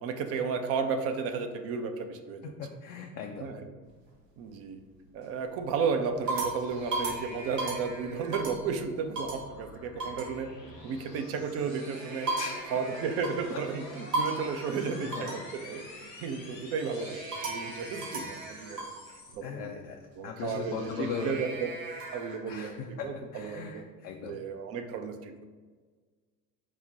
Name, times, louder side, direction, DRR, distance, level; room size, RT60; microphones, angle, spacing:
voice 1, 0.0-2.5 3.4-3.7 4.4-4.8 5.1-10.5 10.8-12.3 12.7-19.8 20.2-21.5 22.1-23.8 24.2-25.5, right 5 dB, 30° right, 7 dB, 0.4 m, -33 dB
voice 2, 2.4-3.5 12.4-12.7 15.1-15.4 18.1-18.3 19.4-20.0 20.2-21.4 22.5-24.4, left 6 dB, 40° left, 1 dB, 0.5 m, -38 dB
sound 1, 3.8-4.5 5.1-5.5 5.9-8.7 9.2-9.5 10.0-10.3 11.5-13.6 14.1-14.6 15.1-15.5 16.9-19.0 20.4-22.4, right 2 dB, 80° right, 1.0 m, -36 dB
sound 2, 6.3-19.4, left 2 dB, 85° left, 1.0 m, -49 dB
5.1 x 2.1 x 4.0 m, 1.5 s
figure-of-eight pair, 70°, 49 cm